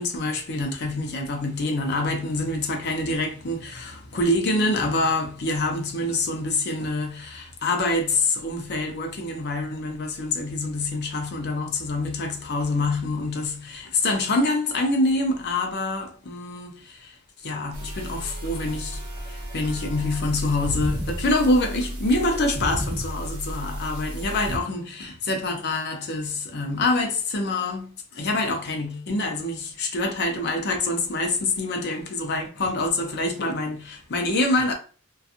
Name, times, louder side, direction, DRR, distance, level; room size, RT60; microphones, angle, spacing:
voice 1, 0.0-34.7, left 2 dB, 50° left, 0.5 m, -26 dB
sound 1, 17.7-24.6, equal, 25° right, 0.9 m, -32 dB
2.7 x 2.3 x 2.4 m
head